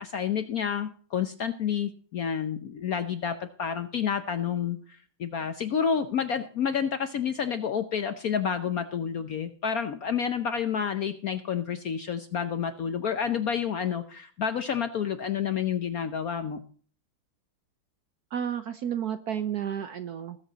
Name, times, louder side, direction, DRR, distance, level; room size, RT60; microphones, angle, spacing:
voice 1, 0.0-16.6, left 7 dB, 60° left, 9 dB, 0.9 m, -29 dB
voice 2, 18.3-20.4, right 9 dB, 65° right, 10 dB, 1.0 m, -31 dB
19.5 x 7.4 x 4.0 m, 0.44 s
omnidirectional pair, 2.3 m